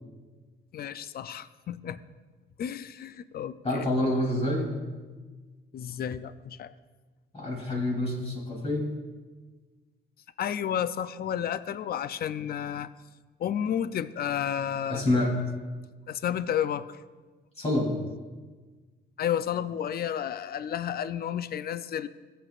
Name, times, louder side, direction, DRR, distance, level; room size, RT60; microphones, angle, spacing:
voice 1, 0.7-2.0 2.6-3.9 5.7-6.7 10.4-12.9 13.4-15.1 16.1-17.0 19.2-22.1, left 9 dB, 50° left, 14 dB, 0.5 m, -31 dB
voice 2, 3.6-4.7 7.3-8.9 14.9-15.3 17.6-17.9, left 1 dB, 30° left, -2 dB, 3.2 m, -27 dB
16.0 x 8.0 x 2.5 m, 1.3 s
cardioid pair, 90°, 20 cm